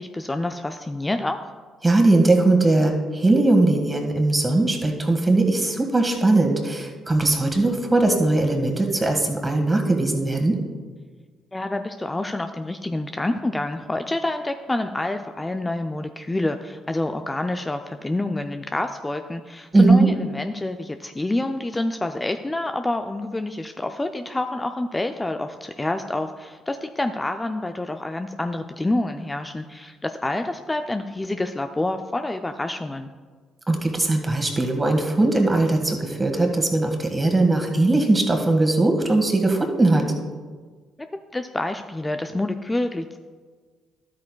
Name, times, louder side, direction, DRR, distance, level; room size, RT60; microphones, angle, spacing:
voice 1, 0.0-1.4 11.5-33.1 41.3-43.2, left 2 dB, 20° left, 6 dB, 0.5 m, -27 dB
voice 2, 1.8-10.6 19.7-20.1 33.7-40.1, right 2 dB, 20° right, 3 dB, 1.7 m, -20 dB
12.5 x 8.3 x 2.3 m, 1.5 s
hypercardioid pair, 50°, 0 cm